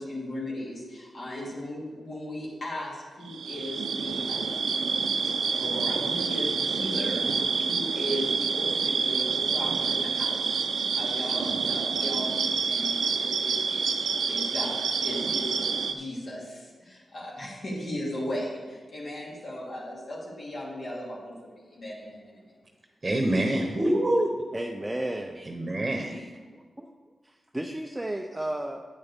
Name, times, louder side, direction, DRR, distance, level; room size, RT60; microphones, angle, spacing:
voice 1, 0.0-4.6 5.2-14.0 14.3-15.6 15.9-22.5, left 1 dB, 60° left, -5 dB, 2.8 m, -37 dB
sound 1, 3.3-15.9, right 5 dB, 85° right, 0.7 m, -28 dB
voice 2, 23.0-24.3 25.5-26.2, right 1 dB, 30° right, 3 dB, 1.0 m, -25 dB
voice 3, 24.5-25.5 26.0-26.9 27.2-28.8, right 1 dB, 15° right, 2 dB, 0.5 m, -34 dB
9.7 x 8.9 x 3.6 m, 1.4 s
wide cardioid pair, 95°, 0 cm